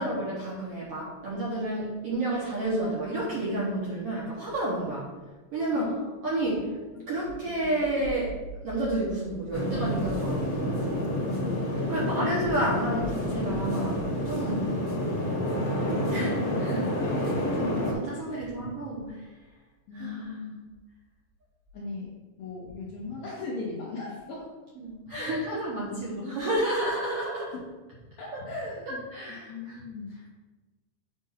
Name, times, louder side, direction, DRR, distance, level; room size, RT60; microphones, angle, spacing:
voice 1, 0.0-5.1 5.5-6.0 6.2-6.7 7.1-11.1 11.9-14.0 14.2-14.7 16.1-16.9 17.6-17.8 18.0-19.3 19.9-20.3 24.8-27.5 28.3-28.4 28.9-29.8, right 1 dB, 60° right, -6 dB, 1.7 m, -30 dB
voice 2, 5.7-6.1 6.4-7.0 11.3-11.6 14.5-14.8 17.0-17.6 18.3-18.7 19.9-20.6 21.7-22.1 22.4-24.5 25.1-25.3 25.8-26.4 28.2-29.0 29.5-30.3, left 3 dB, 70° left, -4 dB, 1.7 m, -38 dB
sound 1, 9.5-17.9, left 1 dB, 55° left, 1.9 m, -29 dB
7.4 x 2.6 x 5.5 m, 1.2 s
omnidirectional pair, 3.9 m